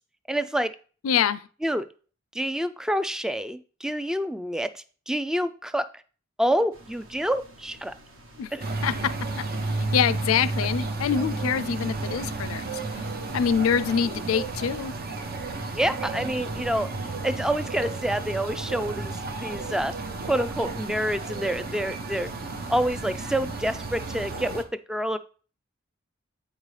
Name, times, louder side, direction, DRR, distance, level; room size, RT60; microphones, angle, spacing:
voice 1, 0.3-0.7 1.6-1.9 2.3-5.8 6.4-7.9 8.5-8.6 15.7-16.9 17.2-19.1 19.4-19.9 20.3-22.3 22.7-25.2, equal, 5° right, 0.3 m, -27 dB
voice 2, 1.0-1.4 8.4-8.5 8.8-9.1 9.4-13.1 13.3-14.9, left 7 dB, 90° left, 0.4 m, -25 dB
sound 1, 6.7-13.8, right 1 dB, 75° right, 1.4 m, -51 dB
sound 2, 8.6-24.6, right 3 dB, 50° right, 0.8 m, -32 dB
8.1 x 5.3 x 3.2 m
head